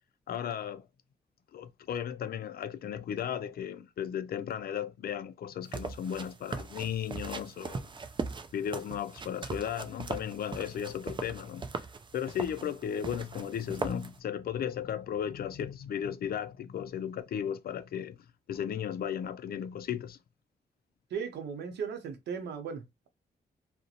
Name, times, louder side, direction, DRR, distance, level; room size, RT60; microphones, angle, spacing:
voice 1, 0.3-0.9 1.5-7.9 8.5-11.6 12.1-18.2 18.5-20.2, left 9 dB, 60° left, 0.4 m, -35 dB
sound 1, 5.6-14.2, right 4 dB, 30° right, 0.4 m, -40 dB
voice 2, 21.1-23.1, right 6 dB, 80° right, 0.6 m, -37 dB
2.4 x 2.0 x 2.7 m
supercardioid pair, 55°, 17 cm